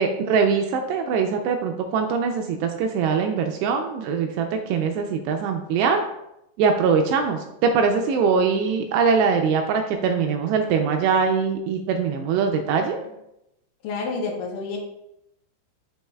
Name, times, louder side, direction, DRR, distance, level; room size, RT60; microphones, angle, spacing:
voice 1, 0.0-6.0 6.6-13.0, right 5 dB, 85° right, 4 dB, 2.5 m, -22 dB
voice 2, 13.8-14.8, left 4 dB, 80° left, -1 dB, 1.9 m, -29 dB
7.3 x 7.0 x 2.3 m, 0.84 s
omnidirectional pair, 5.3 m